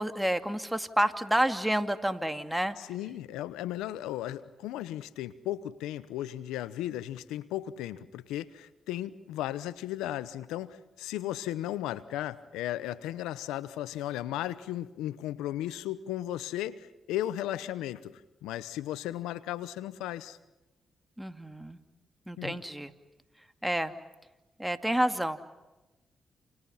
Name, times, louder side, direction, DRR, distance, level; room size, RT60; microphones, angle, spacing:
voice 1, 0.0-2.8 21.2-21.8 22.3-22.9 23.6-23.9 24.6-25.4, right 1 dB, 5° right, 8 dB, 2.5 m, -29 dB
voice 2, 2.8-20.4 22.4-22.6, left 13 dB, 90° left, 15 dB, 0.9 m, -35 dB
29.0 x 28.5 x 5.8 m, 1.1 s
supercardioid pair, 50°, 0 cm